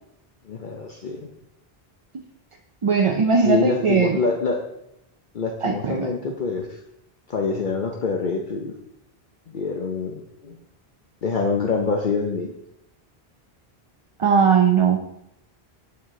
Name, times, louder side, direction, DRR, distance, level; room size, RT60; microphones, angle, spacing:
voice 1, 0.5-1.3 3.4-4.7 5.3-6.8 7.3-8.7 9.5-10.6 11.2-12.5, left 4 dB, 55° left, 2 dB, 0.8 m, -25 dB
voice 2, 2.8-4.2 5.6-6.1 14.2-15.0, right 6 dB, 40° right, 2 dB, 0.5 m, -19 dB
7.6 x 5.9 x 3.7 m, 0.81 s
omnidirectional pair, 1.0 m